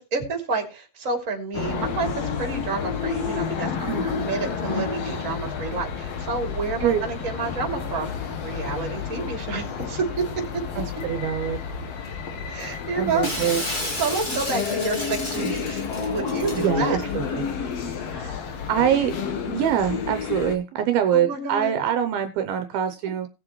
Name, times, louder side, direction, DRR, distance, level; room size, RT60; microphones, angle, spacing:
voice 1, 0.0-8.1 8.4-10.2 12.5-13.3 13.9-17.0 21.1-21.7, right 4 dB, 20° right, 3 dB, 2.8 m, -29 dB
sound 1, 1.5-20.6, left 6 dB, 60° left, 1.7 m, -30 dB
voice 2, 10.8-11.6 13.0-13.6 15.4-15.5 16.6-17.4 18.1-18.4 18.7-19.2 19.4-23.3, right 9 dB, 75° right, 8 dB, 2.6 m, -24 dB
Shatter, 13.2-16.7, equal, 30° left, 0.9 m, -32 dB
19.0 x 7.5 x 3.2 m, 0.29 s
omnidirectional pair, 4.6 m